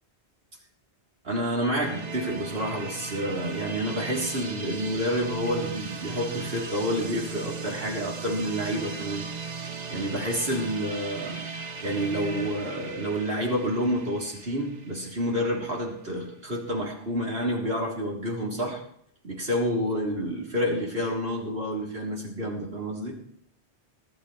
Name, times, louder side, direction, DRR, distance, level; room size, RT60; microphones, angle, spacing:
voice 1, 1.2-9.3 9.9-11.4 11.8-18.8 19.2-23.2, equal, 60° right, -2 dB, 3.8 m, -29 dB
sound 1, 1.8-15.5, right 5 dB, 40° right, 1.0 m, -37 dB
20.5 x 12.5 x 3.3 m, 0.68 s
omnidirectional pair, 1.1 m